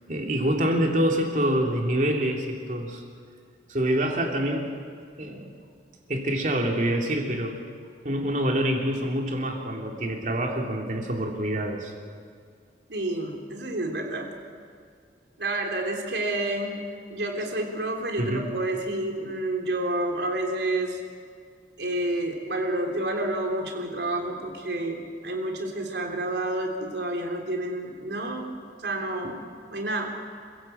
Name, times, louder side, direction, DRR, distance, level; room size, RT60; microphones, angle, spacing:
voice 1, 0.1-3.0 3.7-4.7 5.2-5.5 6.1-7.6 8.0-11.9 18.2-18.4 29.2-29.3, right 1 dB, 45° right, 1 dB, 3.1 m, -26 dB
voice 2, 12.9-14.3 15.4-16.8 17.1-21.0 21.8-30.1, right 1 dB, 75° right, 2 dB, 3.3 m, -29 dB
27.5 x 16.5 x 8.0 m, 2.1 s
head